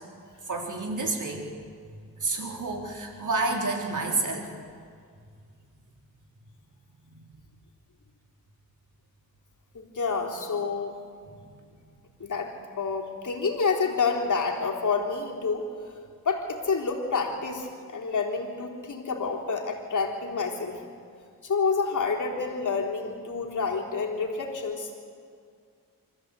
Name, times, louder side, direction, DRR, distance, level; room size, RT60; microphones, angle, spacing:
voice 1, 0.5-1.5 2.2-4.5 7.1-7.2, right 3 dB, 55° right, 1 dB, 3.7 m, -29 dB
voice 2, 9.7-11.0 12.2-16.0 16.2-20.8 21.4-24.9, left 4 dB, 55° left, -1 dB, 3.7 m, -28 dB
25.5 x 14.5 x 8.4 m, 2.2 s
cardioid pair, 70°, 36 cm